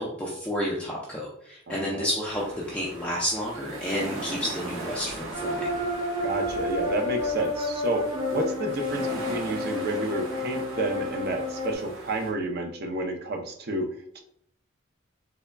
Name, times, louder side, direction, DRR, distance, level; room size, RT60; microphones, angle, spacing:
voice 1, 0.0-5.7, equal, 5° left, -5 dB, 0.5 m, -31 dB
voice 2, 1.7-2.1 6.2-8.0 8.3-13.9 14.1-14.2, right 2 dB, 50° right, 4 dB, 0.6 m, -30 dB
sound 1, 2.3-12.3, right 2 dB, 85° right, 1.0 m, -39 dB
sound 2, 5.3-11.7, left 2 dB, 30° right, 1.5 m, -30 dB
3.4 x 3.4 x 2.2 m, 0.67 s
head